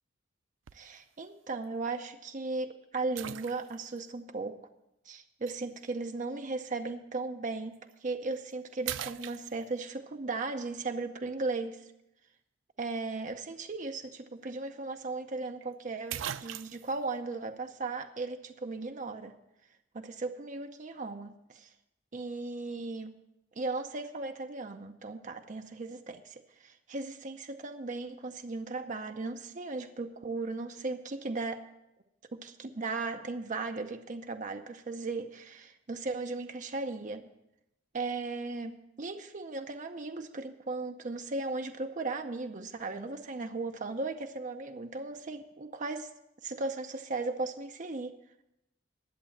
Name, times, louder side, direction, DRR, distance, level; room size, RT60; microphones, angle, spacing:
voice 1, 0.7-4.6 5.1-11.9 12.8-19.3 19.9-21.7 22.1-23.1 23.6-31.6 32.3-37.2 37.9-38.7 39.0-46.1 46.4-48.1, right 3 dB, 40° right, 6 dB, 0.6 m, -37 dB
sound 1, 0.7-1.0 1.6-1.7 3.2-4.0 5.5-5.6 7.7-7.9 8.4-8.5 8.8-9.9 14.0-14.1 14.4-14.5 15.6-15.7 16.1-17.0, right 10 dB, 80° right, 0.4 m, -40 dB
11.0 x 7.6 x 7.1 m, 0.86 s
head